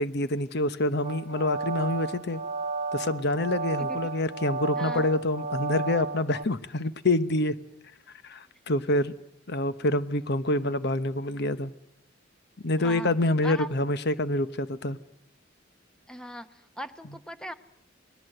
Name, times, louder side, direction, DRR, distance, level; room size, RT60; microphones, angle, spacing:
voice 1, 0.0-2.4 2.9-7.5 8.2-9.1 9.5-11.7 12.6-15.0, left 1 dB, 55° left, 13 dB, 1.0 m, -27 dB
sound 1, 1.0-6.4, right 4 dB, 45° right, 1.0 m, -33 dB
voice 2, 3.8-4.1 4.8-5.1 12.8-13.2 13.4-13.7 16.1-17.5, equal, 5° left, 10 dB, 0.9 m, -39 dB
29.0 x 20.5 x 7.9 m, 0.77 s
head